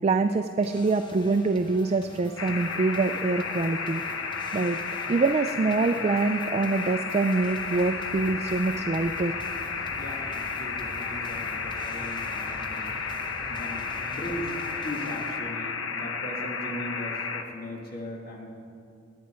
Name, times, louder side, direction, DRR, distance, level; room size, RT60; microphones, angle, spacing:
voice 1, 0.0-4.8 5.1-9.4, right 3 dB, 30° right, 8 dB, 0.3 m, -25 dB
sound 1, 0.6-15.4, left 2 dB, 25° left, 1.0 m, -47 dB
sound 2, 2.4-17.4, left 5 dB, 85° left, 1.0 m, -33 dB
sound 3, 7.4-14.4, right 1 dB, 15° right, 2.3 m, -47 dB
voice 2, 10.0-12.9 13.5-14.5 14.8-18.6, left 1 dB, 50° left, -1 dB, 1.8 m, -38 dB
18.5 x 10.5 x 4.4 m, 2.5 s
head